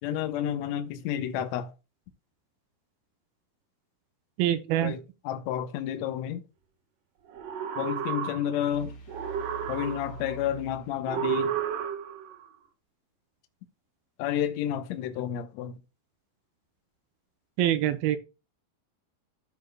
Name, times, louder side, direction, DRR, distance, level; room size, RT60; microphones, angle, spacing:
voice 1, 0.0-1.7 4.8-6.4 7.8-9.0 9.7-11.5 14.2-15.8, left 10 dB, 75° left, 1.6 m, -31 dB
voice 2, 4.4-5.0 17.6-18.2, right 12 dB, 85° right, 2.5 m, -25 dB
sound 1, 7.3-8.7 9.1-10.3 11.0-12.3, right 8 dB, 65° right, 1.9 m, -32 dB
sound 2, 8.7-11.6, right 3 dB, 50° left, 1.4 m, -44 dB
14.5 x 5.0 x 2.2 m
omnidirectional pair, 4.4 m